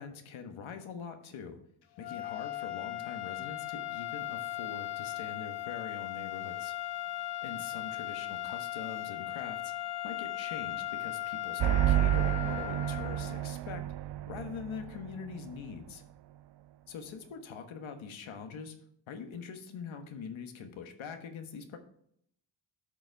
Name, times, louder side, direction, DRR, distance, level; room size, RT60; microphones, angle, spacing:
voice 1, 0.0-1.6 2.0-6.8 7.4-9.7 10.0-13.8 14.3-16.0 16.9-18.7 19.1-21.8, left 6 dB, 90° left, 6 dB, 1.3 m, -43 dB
sound 1, 2.0-13.5, left 15 dB, 55° left, 0.8 m, -38 dB
sound 2, 11.6-15.2, right 13 dB, 60° right, 0.6 m, -30 dB
11.5 x 6.5 x 3.4 m, 0.69 s
cardioid pair, 75°, 46 cm